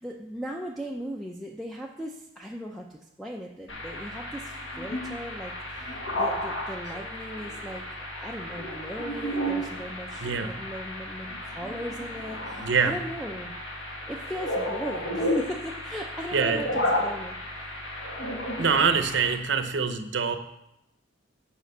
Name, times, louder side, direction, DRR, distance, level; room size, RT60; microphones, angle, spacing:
voice 1, 0.0-13.5 14.1-17.4, equal, ahead, -1 dB, 0.5 m, -38 dB
sound 1, 3.7-19.3, equal, 65° left, 1.7 m, -33 dB
voice 2, 12.6-13.0 16.3-16.6 18.6-20.4, right 5 dB, 65° right, 8 dB, 0.7 m, -24 dB
7.7 x 5.1 x 6.5 m, 0.85 s
head